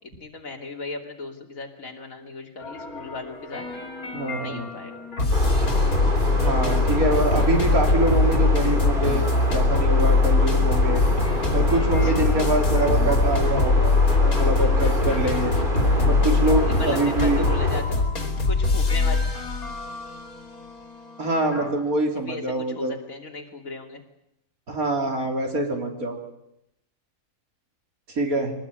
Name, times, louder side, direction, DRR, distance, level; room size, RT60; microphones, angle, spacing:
voice 1, 0.2-3.7 4.4-5.0 12.0-12.1 16.6-19.2 22.2-24.0, left 3 dB, 70° left, 3 dB, 3.2 m, -37 dB
Fear creeps upon you, 2.6-21.8, left 3 dB, 85° left, 3.4 m, -22 dB
voice 2, 4.1-4.6 6.4-9.3 9.5-11.0 11.5-15.5 16.1-17.5 21.2-22.9 24.7-26.2 28.1-28.5, right 2 dB, 85° right, 3 dB, 3.9 m, -25 dB
sound 1, 5.3-17.8, right 1 dB, 35° right, 3.4 m, -30 dB
23.0 x 19.0 x 8.9 m, 0.81 s
omnidirectional pair, 1.5 m